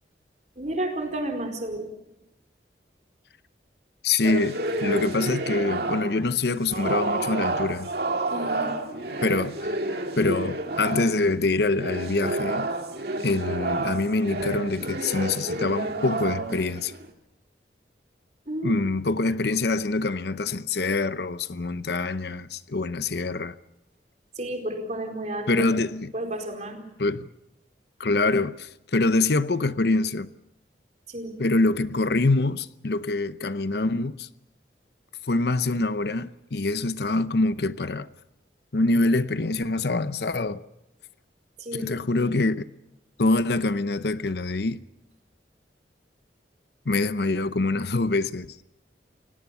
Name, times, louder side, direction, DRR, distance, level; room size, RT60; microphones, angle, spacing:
voice 1, 0.6-1.9 8.3-8.8 18.5-18.8 24.4-25.7 26.1-26.9 31.1-31.4 41.6-41.9, right 1 dB, 40° right, 4.5 m, -32 dB
voice 2, 4.0-7.9 9.2-9.8 10.2-12.7 13.2-16.9 18.6-23.5 25.5-26.1 27.0-27.2 28.0-30.3 31.4-34.3 35.3-38.1 38.7-40.6 41.7-42.6 43.2-44.8 46.9-48.6, left 3 dB, 60° left, 0.8 m, -25 dB
sound 1, 4.2-6.3 6.7-11.3 11.7-17.1, right 2 dB, 60° right, 2.2 m, -29 dB
29.0 x 18.0 x 7.1 m
head